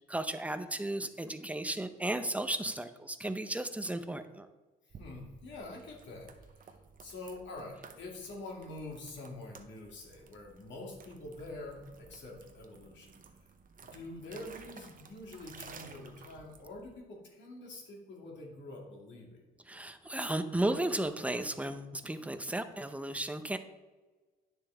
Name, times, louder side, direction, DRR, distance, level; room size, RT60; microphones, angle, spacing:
voice 1, 0.1-4.5 19.7-23.6, right 1 dB, 5° right, 9 dB, 0.6 m, -34 dB
sound 1, 4.9-16.9, right 5 dB, 45° right, 0.8 m, -55 dB
voice 2, 5.0-13.2 13.9-19.4, left 2 dB, 65° left, -1 dB, 2.4 m, -46 dB
9.5 x 6.7 x 3.4 m, 1.3 s
cardioid pair, 90°, 20 cm